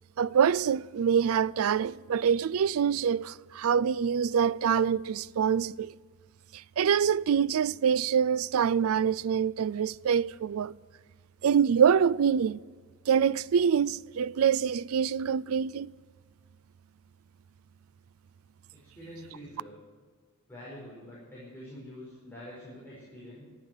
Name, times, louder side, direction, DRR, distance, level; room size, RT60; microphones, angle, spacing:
voice 1, 0.2-5.9 6.8-10.7 11.4-12.6 13.1-15.9, right 7 dB, 75° right, 0.4 m, -25 dB
voice 2, 18.7-19.8 20.5-23.4, equal, 10° left, 5.6 m, -46 dB
14.0 x 12.5 x 6.4 m
head